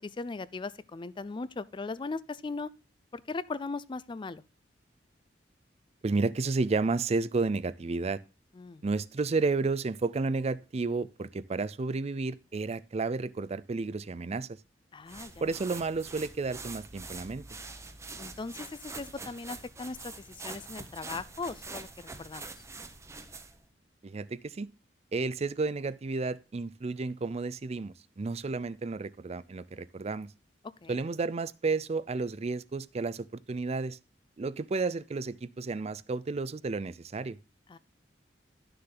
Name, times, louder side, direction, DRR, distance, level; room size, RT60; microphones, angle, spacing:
voice 1, 0.0-2.7 3.1-4.4 8.5-8.8 14.9-15.5 18.2-21.9 22.2-22.5 30.6-31.0 37.7-37.8, left 3 dB, 25° left, 0.4 m, -38 dB
voice 2, 6.0-8.2 8.8-14.5 15.4-17.4 24.0-24.7 25.1-30.3 30.9-34.0 34.4-37.4, right 3 dB, 35° right, 0.4 m, -32 dB
sound 1, 15.1-23.6, right 3 dB, 15° right, 0.9 m, -45 dB
11.5 x 6.7 x 3.8 m
head